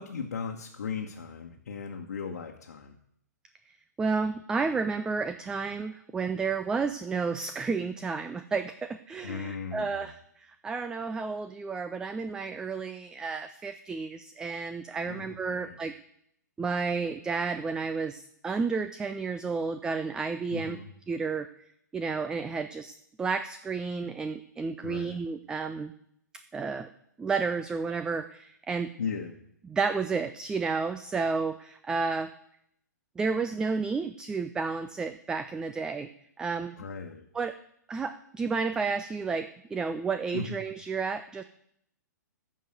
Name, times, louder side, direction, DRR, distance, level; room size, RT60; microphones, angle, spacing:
voice 1, 0.0-3.0 9.2-10.1 15.0-15.7 20.5-20.9 24.8-25.2 29.0-29.4 36.8-37.2 40.3-40.6, left 5 dB, 60° left, 1 dB, 1.3 m, -37 dB
voice 2, 3.7-15.9 16.6-20.8 21.1-21.5 21.9-25.9 26.5-26.9 27.2-28.9 29.6-32.3 33.2-36.1 36.4-36.8 37.3-37.6 37.9-41.4, right 4 dB, 10° right, 11 dB, 0.4 m, -31 dB
14.0 x 5.3 x 7.8 m, 0.73 s
figure-of-eight pair, 115°, 10 cm